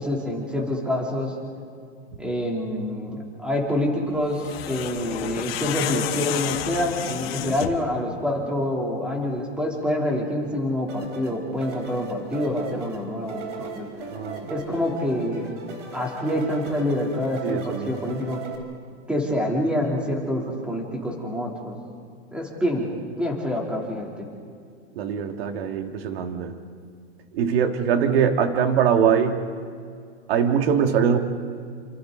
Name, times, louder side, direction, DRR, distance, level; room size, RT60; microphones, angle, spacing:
voice 1, 0.0-1.3 2.2-13.9 14.5-15.5 15.9-18.4 19.1-21.8 22.3-22.9 23.2-24.3, left 1 dB, 5° right, -1 dB, 3.3 m, -26 dB
sound 1, 4.3-7.9, left 12 dB, 55° left, 1.5 m, -31 dB
sound 2, 10.9-18.6, right 4 dB, 90° right, 4.3 m, -38 dB
voice 2, 14.1-14.5 17.4-18.0 24.9-26.6 27.3-29.4 30.3-31.2, right 7 dB, 55° right, 5 dB, 2.3 m, -22 dB
28.5 x 27.0 x 4.0 m, 2.3 s
supercardioid pair, 155°, 35 cm